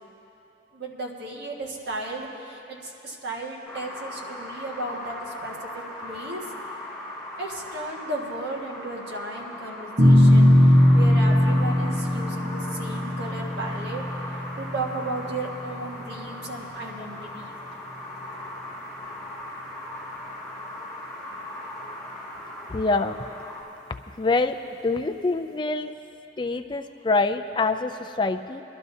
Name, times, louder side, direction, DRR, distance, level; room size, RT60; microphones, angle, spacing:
voice 1, 0.7-6.5 7.4-10.5 10.9-14.0 14.6-17.5, right 2 dB, 65° right, -2 dB, 1.6 m, -34 dB
sound 1, 3.7-23.6, left 1 dB, 5° right, 2.9 m, -39 dB
sound 2, 10.0-16.5, left 1 dB, 40° right, 0.8 m, -20 dB
voice 2, 22.7-23.2 24.2-24.6 24.8-25.9 26.4-28.6, left 3 dB, 25° left, 8 dB, 0.3 m, -25 dB
22.5 x 12.5 x 2.7 m, 3.0 s
head